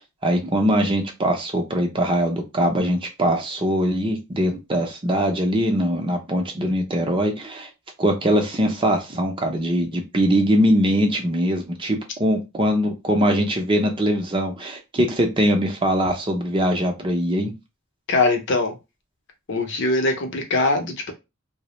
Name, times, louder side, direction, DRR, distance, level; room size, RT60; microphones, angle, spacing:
voice 1, 0.2-7.7 8.0-17.5, equal, 25° right, 0.5 m, -22 dB
voice 2, 18.1-18.8 19.5-21.1, left 2 dB, 60° left, 0.6 m, -22 dB
2.4 x 2.0 x 2.9 m
head